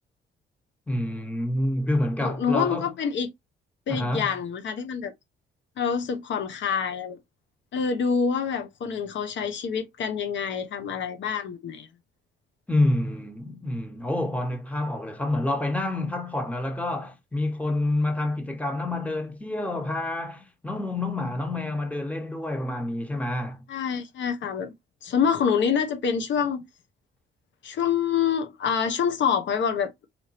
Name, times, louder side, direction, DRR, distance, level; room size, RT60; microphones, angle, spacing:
voice 1, 0.9-2.9 3.9-4.4 12.7-23.6, left 1 dB, 5° left, 1.3 m, -28 dB
voice 2, 2.2-3.3 3.9-5.1 5.8-7.2 7.7-11.9 23.7-24.7 25.0-26.6 27.6-30.1, left 7 dB, 65° left, 1.1 m, -26 dB
4.4 x 3.5 x 2.8 m
cardioid pair, 90°, 20 cm